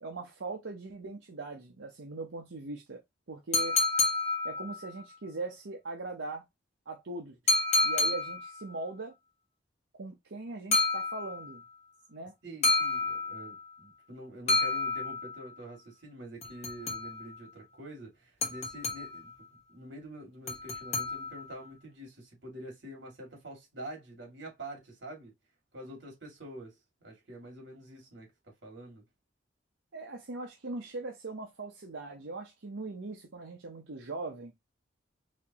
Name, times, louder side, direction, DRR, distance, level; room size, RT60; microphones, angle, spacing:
voice 1, 0.0-3.0 3.3-3.8 4.4-6.4 6.9-9.1 9.9-11.6 12.1-12.3 29.9-34.5, right 3 dB, 85° right, 0.8 m, -40 dB
sound 1, 3.5-5.0 7.5-8.6 10.7-11.6 12.6-13.7 14.5-15.5 16.4-17.4 18.4-19.3 20.5-21.6, left 3 dB, 35° left, 1.3 m, -30 dB
voice 2, 12.4-25.3 25.7-29.0, right 1 dB, 65° right, 2.4 m, -46 dB
4.3 x 3.2 x 3.0 m
head